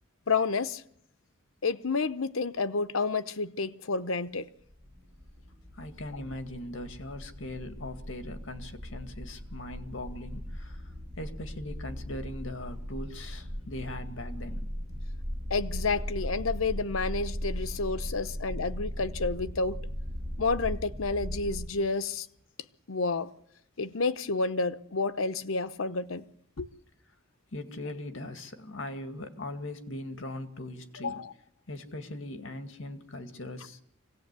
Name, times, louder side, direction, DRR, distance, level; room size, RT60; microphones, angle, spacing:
voice 1, 0.3-0.8 1.6-4.5 15.5-19.8 20.4-22.3 22.9-23.3 23.8-26.2 26.6-26.7 31.0-31.3, left 4 dB, 85° left, 0.9 m, -30 dB
sound 1, 4.7-21.7, equal, 30° right, 5.4 m, -38 dB
voice 2, 5.8-10.8 11.2-14.7 27.5-31.2 31.7-33.8, left 1 dB, 70° left, 2.1 m, -40 dB
25.0 x 17.5 x 8.2 m
head